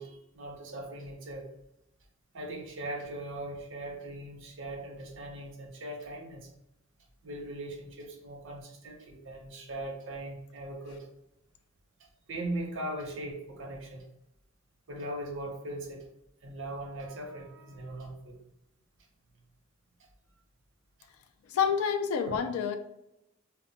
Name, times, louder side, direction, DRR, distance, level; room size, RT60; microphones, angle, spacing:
voice 1, 0.0-1.5 2.3-6.5 7.2-11.1 12.3-14.0 14.9-16.1 16.4-18.4 22.3-22.4, right 1 dB, 60° right, 2 dB, 0.6 m, -39 dB
voice 2, 21.5-22.8, left 7 dB, 90° left, 8 dB, 0.3 m, -28 dB
2.1 x 2.1 x 3.8 m, 0.84 s
head